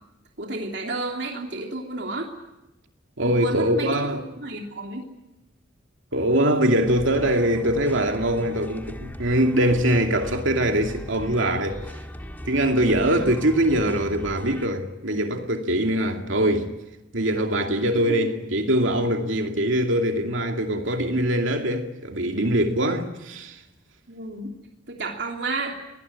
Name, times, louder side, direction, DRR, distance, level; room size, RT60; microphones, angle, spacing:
voice 1, 0.4-2.3 3.2-5.0 13.0-13.3 18.1-18.2 24.1-24.5 24.9-25.8, right 2 dB, 65° right, 3.1 m, -31 dB
voice 2, 3.2-4.2 6.1-11.8 12.4-16.7 17.1-23.6, right 1 dB, 90° right, 2.5 m, -23 dB
sound 1, 6.9-14.7, equal, 10° left, 1.7 m, -39 dB
24.5 x 19.5 x 9.7 m
head